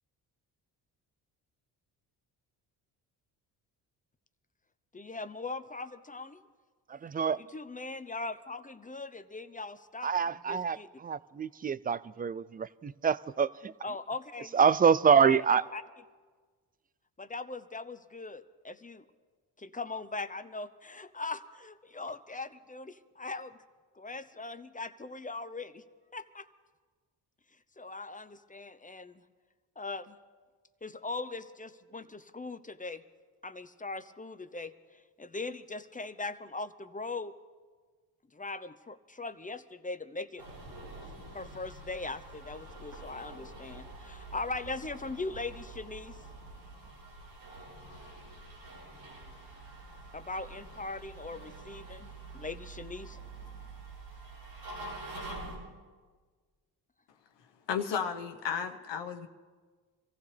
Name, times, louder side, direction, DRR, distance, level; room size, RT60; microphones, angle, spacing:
voice 1, 4.9-6.4 7.4-10.1 10.5-10.9 13.8-14.6 15.1-15.4 15.7-15.8 17.2-19.0 19.6-23.6 23.9-25.8 26.1-26.5 27.8-29.2 29.8-30.2 30.8-33.0 33.4-37.3 38.3-40.4 41.3-46.2 50.1-53.2, left 3 dB, 20° left, 12 dB, 0.8 m, -40 dB
voice 2, 6.9-7.4 10.0-13.7 14.5-15.6, right 6 dB, 20° right, 19 dB, 0.4 m, -26 dB
sound 1, 40.4-55.6, right 2 dB, 90° right, 5.6 m, -46 dB
voice 3, 57.7-59.3, left 7 dB, 70° left, 5 dB, 1.3 m, -33 dB
25.5 x 15.0 x 3.4 m, 1.5 s
supercardioid pair, 65°, 45 cm